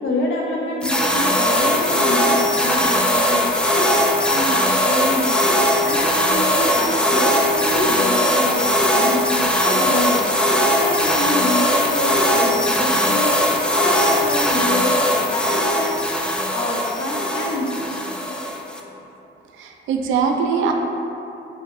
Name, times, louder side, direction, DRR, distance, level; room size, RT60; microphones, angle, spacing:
voice 1, 0.0-3.9 4.2-5.5 5.8-10.4 10.8-13.4 13.7-16.2 16.5-18.0, left 2 dB, 85° left, -2 dB, 0.7 m, -26 dB
sound 1, 0.8-18.8, equal, 5° left, 0.3 m, -19 dB
voice 2, 19.6-20.7, right 6 dB, 80° right, 3 dB, 0.4 m, -21 dB
3.4 x 3.1 x 3.5 m, 2.9 s
cardioid pair, 90°, 20 cm